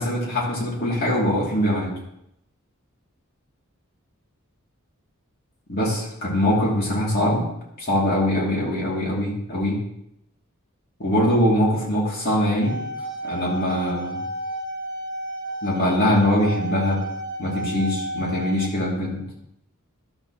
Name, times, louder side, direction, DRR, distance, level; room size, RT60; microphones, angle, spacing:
voice 1, 0.0-1.9 5.7-7.5 7.8-9.8 11.0-12.8 13.2-14.2 15.6-17.0 17.4-19.2, left 1 dB, 45° left, -4 dB, 2.7 m, -22 dB
sound 1, 12.4-18.7, right 1 dB, 20° right, 1.0 m, -32 dB
12.5 x 6.8 x 3.0 m, 0.78 s
head